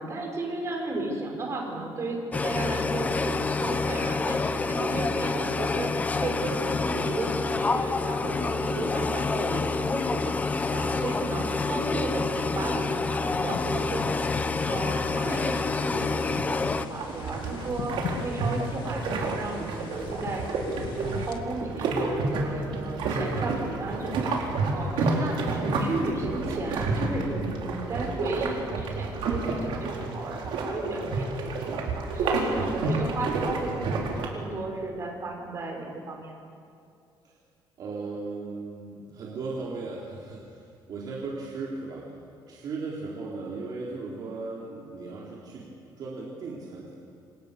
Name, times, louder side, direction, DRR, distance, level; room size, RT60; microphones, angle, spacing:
voice 1, 0.0-5.9 6.2-10.4 10.7-14.0 14.7-17.9 18.2-20.5 20.9-36.3, right 2 dB, 35° right, 1 dB, 6.0 m, -34 dB
sound 1, 2.3-16.9, left 4 dB, 15° left, 0.9 m, -28 dB
sound 2, 13.4-21.4, left 6 dB, 70° left, 2.1 m, -40 dB
sound 3, 16.9-34.3, right 3 dB, 75° right, 4.7 m, -30 dB
voice 2, 37.8-42.1 42.5-45.7 46.0-46.9, right 3 dB, 50° right, -4 dB, 4.2 m, -37 dB
28.0 x 27.5 x 7.0 m, 2.4 s
cardioid pair, 170°, 9 cm